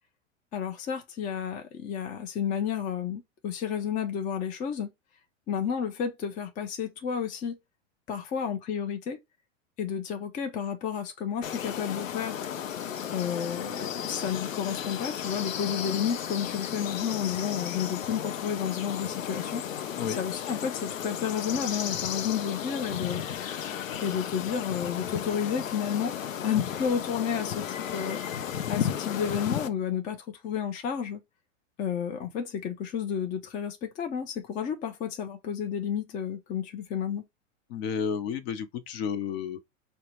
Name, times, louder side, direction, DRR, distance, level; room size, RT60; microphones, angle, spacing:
voice 1, 0.5-4.9 5.5-7.6 8.1-9.2 9.8-12.4 13.1-23.2 24.0-28.2 28.7-31.2 31.8-37.2, left 8 dB, 20° left, 0.5 m, -31 dB
sound 1, 11.4-29.7, left 9 dB, 85° left, 0.7 m, -34 dB
voice 2, 37.7-39.6, left 7 dB, 55° left, 0.8 m, -31 dB
4.3 x 2.1 x 2.8 m
hypercardioid pair, 100°, 38 cm